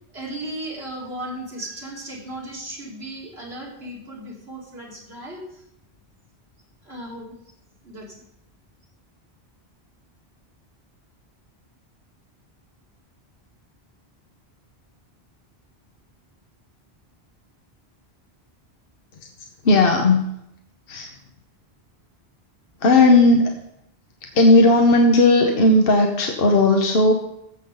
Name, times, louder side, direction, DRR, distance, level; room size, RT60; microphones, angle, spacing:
voice 1, 0.1-5.6 6.8-7.3 7.8-8.2, right 1 dB, 75° right, -3 dB, 2.9 m, -36 dB
voice 2, 19.6-20.3 20.9-21.1 22.8-23.5 24.3-27.1, left 2 dB, 65° left, 2 dB, 1.2 m, -15 dB
15.0 x 6.9 x 3.8 m, 0.78 s
omnidirectional pair, 1.1 m